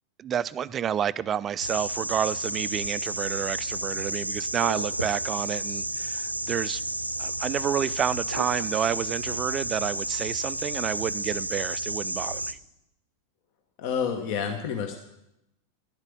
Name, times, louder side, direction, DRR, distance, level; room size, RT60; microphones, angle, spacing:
voice 1, 0.2-6.8 7.2-12.6, right 9 dB, 25° right, 19 dB, 0.4 m, -29 dB
sound 1, 1.6-12.5, right 1 dB, 85° right, 0.6 m, -31 dB
voice 2, 13.8-15.0, left 7 dB, 45° left, 6 dB, 1.2 m, -29 dB
11.5 x 8.1 x 8.8 m, 0.87 s
figure-of-eight pair, 90°, 0 cm